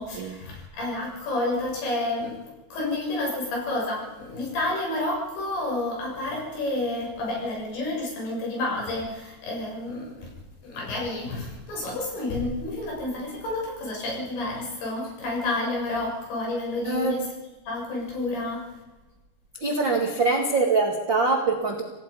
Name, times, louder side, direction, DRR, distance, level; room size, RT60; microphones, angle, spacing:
voice 1, 0.0-10.3 10.6-17.3 17.7-18.7, left 2 dB, 65° left, -2 dB, 9.5 m, -30 dB
voice 2, 16.8-17.2 19.6-21.8, right 3 dB, 55° right, 2 dB, 1.3 m, -23 dB
28.0 x 17.5 x 5.5 m, 1.1 s
omnidirectional pair, 5.4 m